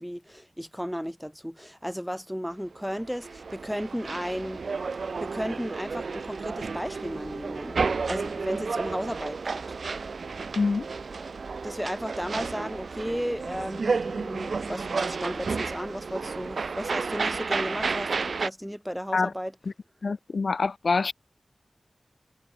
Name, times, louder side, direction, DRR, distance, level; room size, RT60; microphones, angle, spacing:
voice 1, 0.0-4.6 4.9-9.8 11.6-19.5, equal, ahead, 1.6 m, -34 dB
sound 1, 2.9-18.5, right 4 dB, 80° right, 3.0 m, -32 dB
voice 2, 20.0-21.1, left 4 dB, 70° left, 0.8 m, -25 dB
wide cardioid pair, 80°, 0 cm